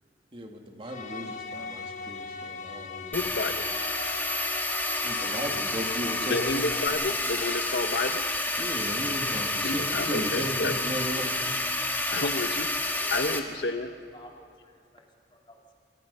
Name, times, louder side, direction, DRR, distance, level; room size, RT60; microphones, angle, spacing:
voice 1, 0.3-3.3 5.0-6.7 8.6-11.3, equal, 30° right, 2 dB, 2.5 m, -36 dB
sound 1, 0.8-6.9, left 5 dB, 45° left, 1.4 m, -39 dB
voice 2, 3.1-3.5 6.3-8.2 9.6-10.7 12.1-12.7 13.1-13.9, left 3 dB, 70° left, 8 dB, 1.1 m, -30 dB
sound 2, 3.1-13.4, left 2 dB, 10° left, 1.7 m, -29 dB
voice 3, 12.8-13.4 14.1-15.8, left 1 dB, 30° left, 0 dB, 2.5 m, -53 dB
27.5 x 23.5 x 5.6 m, 2.2 s
head